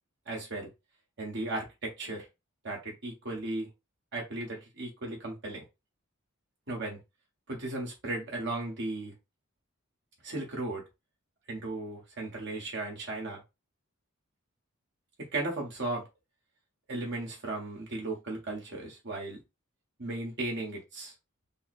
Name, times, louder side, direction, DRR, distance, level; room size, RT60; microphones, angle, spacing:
voice 1, 0.3-0.7 1.2-2.3 2.6-3.7 4.1-5.6 6.7-7.0 7.5-9.1 10.2-10.8 11.5-13.4 15.3-16.0 16.9-19.4 20.0-21.1, right 2 dB, 55° right, 1.4 m, -36 dB
3.8 x 2.2 x 4.2 m
head